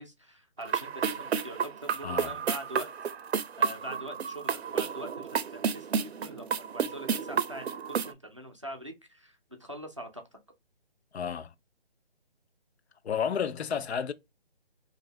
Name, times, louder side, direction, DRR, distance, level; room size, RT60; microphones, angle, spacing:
voice 1, 0.0-2.9 3.6-10.2, right 1 dB, 30° right, 0.4 m, -43 dB
sound 1, 0.6-8.1, right 6 dB, 85° right, 0.5 m, -31 dB
voice 2, 2.0-2.4 11.1-11.5 13.0-14.1, left 7 dB, 85° left, 0.5 m, -31 dB
2.6 x 2.5 x 3.1 m
figure-of-eight pair, 165°, 31 cm